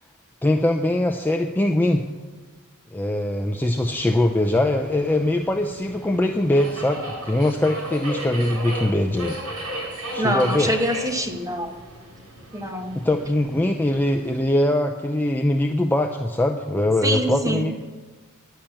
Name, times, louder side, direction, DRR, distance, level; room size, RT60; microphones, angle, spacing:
voice 1, 0.4-2.0 2.9-9.4 10.1-10.7 12.9-17.7, left 1 dB, 10° left, 3 dB, 0.4 m, -22 dB
Subway metro underground, 3.8-14.4, right 1 dB, 80° right, 4.4 m, -36 dB
voice 2, 10.2-11.7 12.5-13.0 17.0-17.7, equal, 15° right, 3 dB, 1.0 m, -25 dB
10.5 x 5.9 x 8.7 m, 1.3 s
head